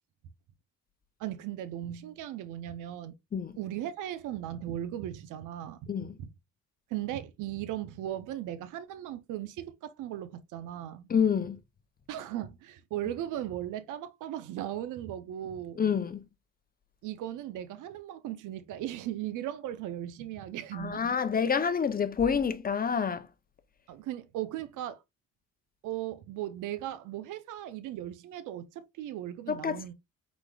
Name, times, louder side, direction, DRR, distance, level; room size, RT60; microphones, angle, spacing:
voice 1, 1.2-3.1 3.6-6.1 6.9-11.1 12.1-15.8 17.0-21.0 23.9-25.0 25.8-29.9, right 12 dB, 85° right, 0.6 m, -37 dB
voice 2, 11.1-11.6 15.8-16.2 20.7-23.3 29.5-29.8, left 6 dB, 30° left, 0.6 m, -28 dB
4.6 x 4.1 x 2.3 m
cardioid pair, 90°, 30 cm